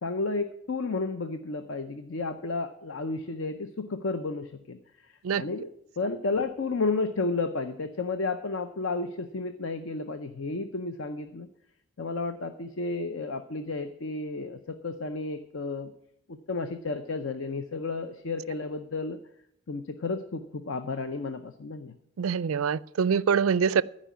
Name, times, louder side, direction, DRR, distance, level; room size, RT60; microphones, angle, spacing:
voice 1, 0.0-5.7 6.0-11.5 12.0-15.9 16.3-19.2 19.7-22.0, left 3 dB, 65° left, 9 dB, 0.6 m, -32 dB
voice 2, 22.2-23.8, right 6 dB, 75° right, 20 dB, 0.4 m, -24 dB
14.0 x 5.1 x 9.3 m, 0.77 s
head